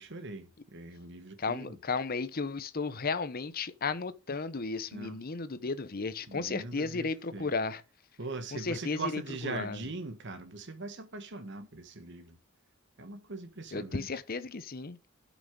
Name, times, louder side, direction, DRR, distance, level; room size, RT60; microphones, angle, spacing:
voice 1, 0.0-1.8 4.9-5.2 6.3-7.5 8.2-12.4 13.0-14.1, right 3 dB, 60° right, 1.4 m, -41 dB
voice 2, 1.4-7.8 8.5-9.8 13.7-15.0, left 4 dB, 45° left, 0.8 m, -34 dB
9.5 x 6.2 x 5.3 m
head